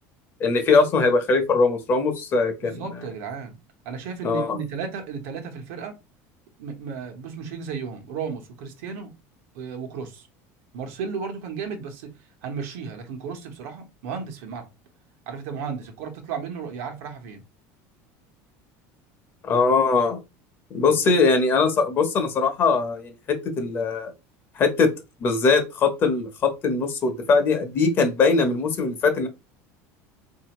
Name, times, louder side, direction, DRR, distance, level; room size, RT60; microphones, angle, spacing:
voice 1, 0.4-2.8 4.2-4.6 19.4-20.2 20.7-24.1 24.6-24.9 25.2-29.3, left 4 dB, 30° left, 0.8 m, -21 dB
voice 2, 2.6-3.5 3.8-5.9 6.6-9.1 9.5-10.3 10.7-12.1 12.4-14.7 15.3-17.4 21.1-21.2, right 6 dB, 80° right, 1.0 m, -34 dB
4.1 x 2.7 x 2.9 m
cardioid pair, 155°, 7 cm